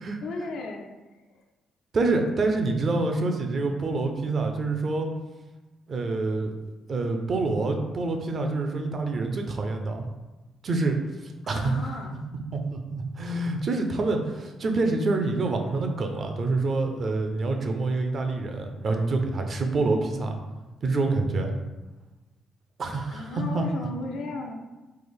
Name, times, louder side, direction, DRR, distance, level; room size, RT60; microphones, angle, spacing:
voice 1, 0.2-0.9 1.3-1.4 11.4-12.2 19.7-20.2 23.1-24.5, left 3 dB, 75° left, 2 dB, 0.5 m, -35 dB
voice 2, 1.9-5.1 5.9-6.5 6.9-10.1 10.6-12.0 12.5-20.3 20.8-21.5 22.8-23.6, right 3 dB, 50° right, 4 dB, 0.5 m, -27 dB
3.2 x 2.0 x 3.4 m, 1.1 s
cardioid pair, 90°, 0 cm